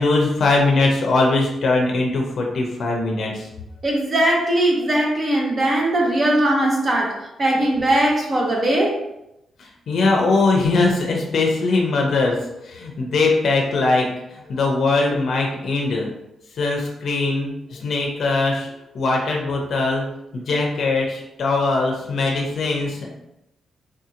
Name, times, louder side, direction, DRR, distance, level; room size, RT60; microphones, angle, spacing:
voice 1, 0.0-3.5 9.6-14.1 14.5-16.1 16.6-18.7 18.9-20.0 20.3-23.1, left 3 dB, 65° left, 0 dB, 0.6 m, -21 dB
voice 2, 3.8-9.0, right 1 dB, 35° right, -1 dB, 0.7 m, -20 dB
3.7 x 2.8 x 2.5 m, 0.85 s
cardioid pair, 110°, 0 cm